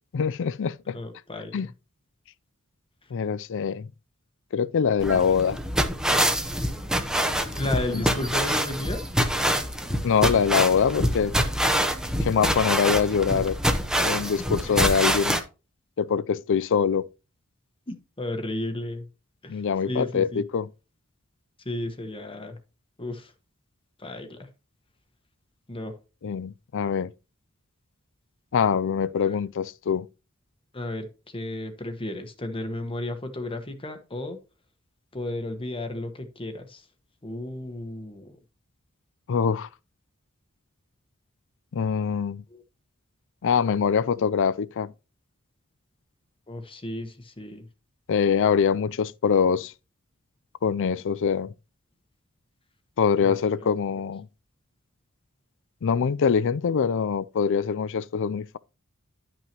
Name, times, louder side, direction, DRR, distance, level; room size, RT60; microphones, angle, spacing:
voice 1, 0.1-1.0 1.5-1.7 3.1-3.9 4.5-5.6 7.9-8.0 10.0-11.3 12.2-13.6 14.0-15.4 16.0-17.1 19.5-20.7 26.2-27.1 28.5-30.1 39.3-39.7 41.7-42.4 43.4-44.9 48.1-49.7 50.6-51.5 53.0-54.3 55.8-58.6, left 6 dB, 60° left, 0.4 m, -24 dB
voice 2, 0.9-1.6 7.5-9.0 14.4-14.8 17.9-19.1 19.4-20.4 21.6-22.6 23.0-23.3 24.0-24.5 25.7-26.0 29.2-29.4 30.7-34.4 35.1-36.9 37.2-38.4 42.5-42.6 46.5-47.7 53.2-53.8, left 1 dB, 25° left, 1.1 m, -33 dB
sound 1, 5.0-15.4, equal, 5° right, 0.9 m, -25 dB
11.5 x 6.0 x 2.9 m
head